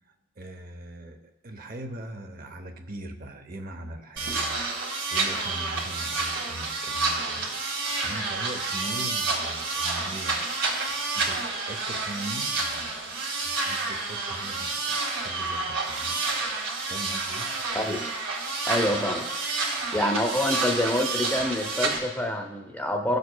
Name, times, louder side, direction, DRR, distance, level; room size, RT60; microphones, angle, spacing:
voice 1, 0.1-7.5 8.0-10.7 11.1-16.2 16.9-17.5, right 1 dB, 45° right, 6 dB, 0.7 m, -41 dB
sound 1, 4.2-22.0, right 3 dB, 75° right, 1.8 m, -29 dB
voice 2, 18.7-19.3 19.9-23.2, left 1 dB, 10° left, 3 dB, 0.5 m, -26 dB
17.0 x 6.5 x 2.2 m, 1.0 s
head